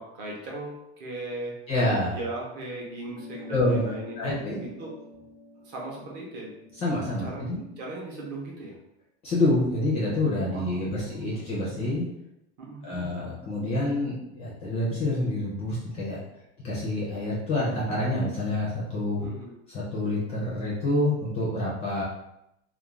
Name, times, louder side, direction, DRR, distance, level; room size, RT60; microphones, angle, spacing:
voice 1, 0.0-1.6 2.1-5.0 5.6-6.6 7.2-8.8 10.5-11.4 12.6-13.1 19.2-19.5, right 2 dB, 35° right, -2 dB, 0.5 m, -38 dB
voice 2, 1.7-2.2 3.5-3.9 4.2-4.7 6.8-7.6 9.2-12.1 12.8-16.2 16.6-19.3 19.7-22.0, left 1 dB, 20° left, -6 dB, 0.4 m, -27 dB
sound 1, 3.1-7.9, left 2 dB, 70° left, 0.5 m, -46 dB
2.4 x 2.0 x 3.0 m, 0.83 s
supercardioid pair, 175°, 31 cm